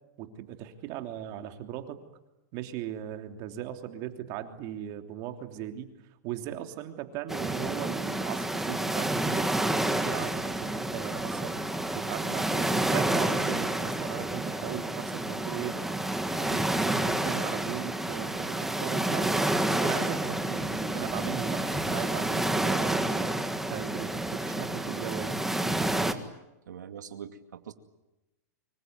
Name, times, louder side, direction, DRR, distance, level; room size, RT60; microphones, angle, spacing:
voice 1, 0.2-2.0 2.5-5.9 6.2-11.6 11.9-15.8 16.4-19.5 19.8-23.3 23.7-25.5, right 11 dB, 40° right, 6 dB, 3.1 m, -38 dB
sound 1, 7.3-26.1, right 1 dB, 5° right, 1.7 m, -29 dB
voice 2, 26.7-27.7, right 8 dB, 90° right, 7 dB, 2.4 m, -43 dB
25.5 x 24.5 x 9.4 m, 0.96 s
hypercardioid pair, 140°, 9 cm